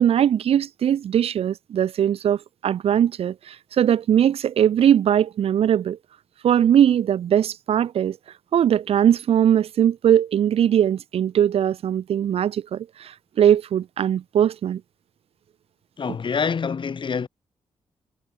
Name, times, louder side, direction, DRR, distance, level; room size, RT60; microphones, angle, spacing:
voice 1, 0.0-6.0 6.4-8.2 8.5-14.8, right 9 dB, 75° right, 1.3 m, -20 dB
voice 2, 16.0-17.3, left 6 dB, 55° left, 3.5 m, -26 dB
cardioid pair, 60°, 10 cm